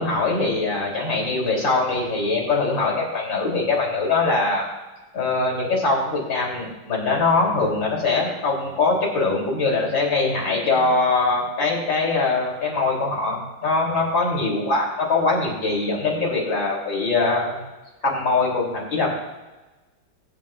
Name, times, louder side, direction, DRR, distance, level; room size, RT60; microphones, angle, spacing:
voice 1, 0.0-4.6 5.1-17.6 18.0-19.1, left 3 dB, 85° left, -2 dB, 3.9 m, -22 dB
23.0 x 9.1 x 2.4 m, 1.1 s
omnidirectional pair, 2.0 m